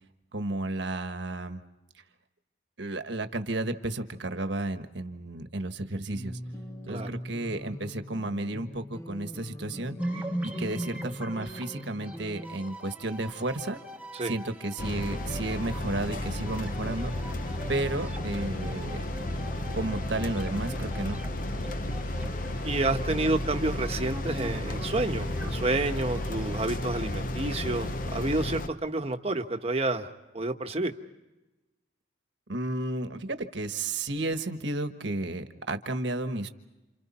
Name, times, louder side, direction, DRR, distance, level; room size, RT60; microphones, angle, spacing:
voice 1, 0.3-1.6 2.8-6.4 6.9-10.0 10.4-13.8 14.2-17.1 17.7-19.0 19.7-21.2 32.5-36.5, right 2 dB, 65° right, 8 dB, 1.4 m, -32 dB
sound 1, 6.1-12.5, equal, 15° left, 1.0 m, -42 dB
sound 2, 10.0-26.9, right 1 dB, 5° right, 1.3 m, -41 dB
sound 3, 14.8-28.7, left 1 dB, 45° left, 0.9 m, -33 dB
voice 2, 22.6-30.1 30.3-30.9, right 2 dB, 30° right, 5 dB, 1.2 m, -29 dB
30.0 x 28.0 x 4.3 m, 1.1 s
head